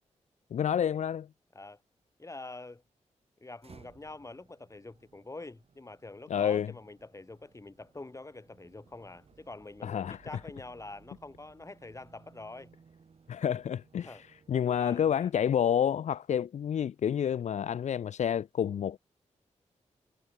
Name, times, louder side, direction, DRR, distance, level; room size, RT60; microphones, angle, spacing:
voice 1, 0.5-1.3 6.3-6.7 9.8-10.2 13.3-14.2 14.5-19.0, left 9 dB, 70° left, 0.5 m, -29 dB
voice 2, 2.2-2.8 3.4-12.7 14.0-14.2 14.5-15.3, left 2 dB, 25° left, 5.5 m, -46 dB
sound 1, 3.6-15.6, right 5 dB, 55° right, 4.4 m, -61 dB
cardioid pair, 85°, 12 cm